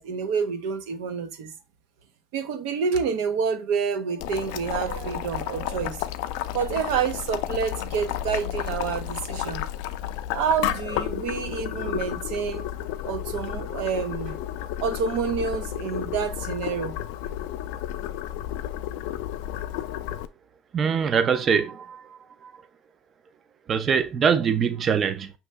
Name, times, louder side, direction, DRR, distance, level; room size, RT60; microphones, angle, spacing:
voice 1, 0.0-1.5 2.3-6.0 6.5-9.6 10.3-12.7 13.0-14.4 14.8-17.0, right 6 dB, 90° right, 0.7 m, -28 dB
Boiling, 4.2-20.3, left 12 dB, 85° left, 0.3 m, -32 dB
voice 2, 20.7-22.5 23.7-25.3, right 6 dB, 30° right, 0.3 m, -23 dB
5.3 x 2.9 x 3.4 m
cardioid pair, 160°, 0 cm